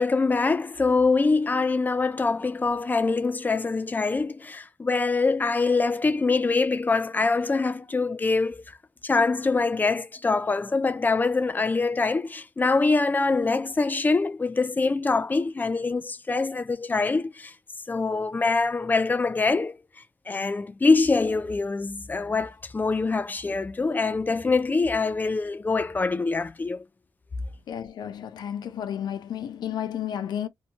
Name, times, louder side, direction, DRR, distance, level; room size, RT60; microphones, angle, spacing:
voice 1, 0.0-8.6 9.0-17.5 17.9-19.8 20.3-26.8, left 3 dB, 25° left, 0.5 m, -24 dB
voice 2, 27.7-30.5, left 9 dB, 75° left, 0.5 m, -32 dB
2.7 x 2.2 x 2.8 m
cardioid pair, 90°, 7 cm